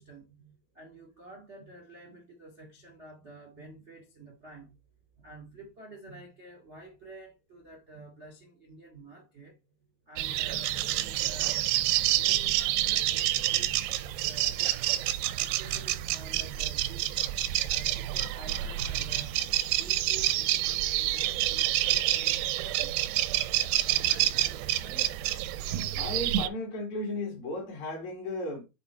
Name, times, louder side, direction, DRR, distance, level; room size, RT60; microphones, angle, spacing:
voice 1, 0.0-4.8 5.2-9.6 10.0-11.6 12.0-14.6 15.2-17.1 17.7-23.2 23.7-25.2, right 2 dB, 35° right, 1.1 m, -50 dB
sound 1, 10.2-26.5, right 14 dB, 85° right, 2.7 m, -28 dB
voice 2, 25.9-28.6, left 1 dB, 50° left, 3.2 m, -35 dB
7.3 x 4.5 x 4.5 m
omnidirectional pair, 4.6 m